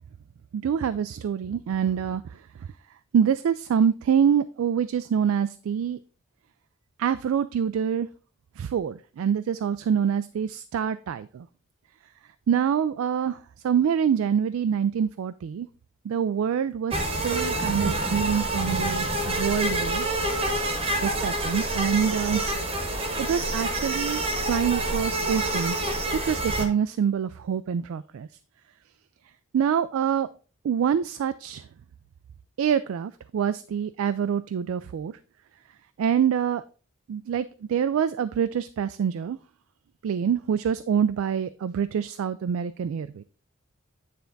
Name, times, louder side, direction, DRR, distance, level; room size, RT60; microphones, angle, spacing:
voice 1, 0.5-2.2 3.1-6.0 7.0-8.1 8.6-11.5 12.5-15.7 16.0-20.1 21.0-22.4 23.2-25.9 26.1-28.3 29.5-30.3 30.6-31.6 32.6-35.1 36.0-36.6 37.1-39.4 40.0-43.2, right 8 dB, 80° right, 13 dB, 0.3 m, -26 dB
sound 1, 16.9-26.7, right 1 dB, 25° right, 0.9 m, -27 dB
9.2 x 3.4 x 3.8 m, 0.38 s
head